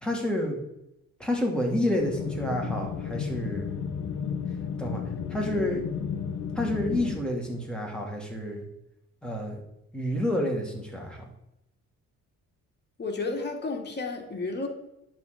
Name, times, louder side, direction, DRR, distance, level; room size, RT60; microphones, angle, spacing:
voice 1, 0.0-0.6 1.2-3.7 4.8-5.0 5.3-5.8 6.5-8.6 9.2-9.6 9.9-11.3, left 1 dB, 5° left, 0 dB, 3.2 m, -29 dB
sound 1, 2.0-7.2, left 7 dB, 60° left, 1.2 m, -33 dB
voice 2, 13.0-14.7, left 3 dB, 35° left, 2 dB, 2.5 m, -32 dB
10.5 x 4.6 x 8.0 m, 0.85 s
cardioid pair, 90°, 30 cm